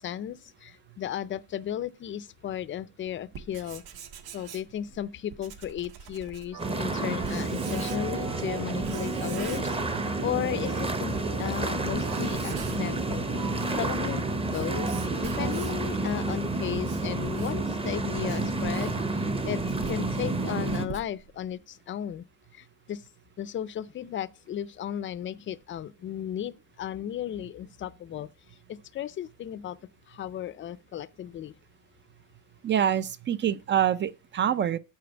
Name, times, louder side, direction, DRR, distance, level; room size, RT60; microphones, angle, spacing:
voice 1, 0.0-3.8 4.3-9.8 10.2-13.2 13.8-14.2 14.5-22.2 22.5-23.0 23.4-28.3 28.7-29.8 30.1-31.5, left 10 dB, 35° left, 0.5 m, -35 dB
Writing, 3.2-8.3 8.8-10.3 10.6-10.7 11.3-11.4 11.8-13.0 13.4-15.9 16.5-21.5, right 7 dB, 90° right, 1.7 m, -44 dB
sound 1, 6.5-16.2, right 4 dB, 60° right, 2.6 m, -41 dB
sound 2, 6.6-20.8, right 2 dB, 15° right, 0.9 m, -30 dB
voice 2, 32.6-34.8, right 9 dB, 30° right, 0.4 m, -25 dB
8.5 x 4.5 x 7.0 m
cardioid pair, 165°, 36 cm